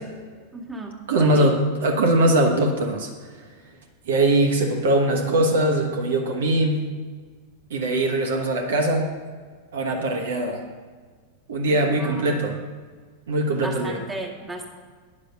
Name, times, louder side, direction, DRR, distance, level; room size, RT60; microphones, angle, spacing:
voice 1, 0.5-1.5 11.7-12.3 13.6-14.7, right 2 dB, 5° right, -2 dB, 1.8 m, -34 dB
voice 2, 1.1-1.5 1.8-3.1 4.1-6.8 7.7-9.1 9.7-10.6 11.5-12.6 13.3-14.0, right 1 dB, 60° right, 2 dB, 1.4 m, -21 dB
9.7 x 6.6 x 6.7 m, 1.6 s
figure-of-eight pair, 90°, 0 cm